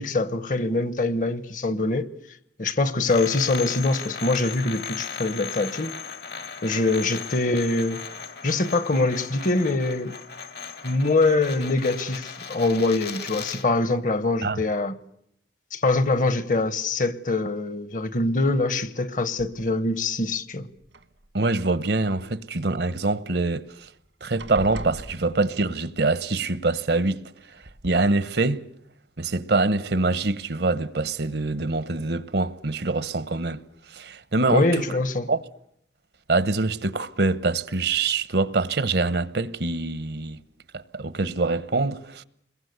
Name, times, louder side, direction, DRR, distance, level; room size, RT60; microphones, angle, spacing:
voice 1, 0.0-2.1 2.6-5.9 6.6-8.0 8.4-10.2 10.8-15.0 15.7-20.7 34.5-35.3, left 2 dB, 45° left, 1.1 m, -24 dB
sound 1, 3.1-13.7, left 6 dB, 60° left, 1.9 m, -37 dB
sound 2, 19.4-20.0 20.8-21.6 23.4-23.5 23.8-24.1 24.4-25.8 27.0-27.1 27.6-28.0, right 1 dB, 85° right, 1.8 m, -40 dB
voice 2, 21.3-23.9 24.2-27.2 27.5-28.6 29.2-33.6 33.9-34.8 35.3-35.4 36.3-40.4 40.7-42.2, right 3 dB, 65° right, 1.0 m, -25 dB
27.5 x 22.0 x 8.1 m
head